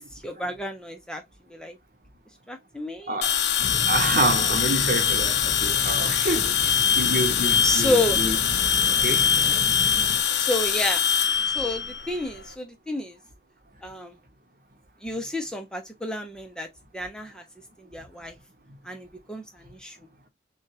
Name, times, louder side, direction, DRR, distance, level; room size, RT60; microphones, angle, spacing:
voice 1, 0.2-1.2 1.5-1.8 2.5-3.2 7.6-8.2 10.4-11.0 11.5-13.2 13.8-14.1 15.0-16.7 16.9-17.4 17.8-18.3 18.8-20.0, left 1 dB, 5° left, 0.7 m, -30 dB
sound 1, 3.2-12.5, left 8 dB, 75° left, 0.6 m, -23 dB
Rain, 3.6-10.2, equal, 40° left, 1.0 m, -36 dB
voice 2, 3.9-8.4 8.9-9.3, right 2 dB, 50° right, 1.2 m, -27 dB
6.3 x 2.3 x 2.8 m
head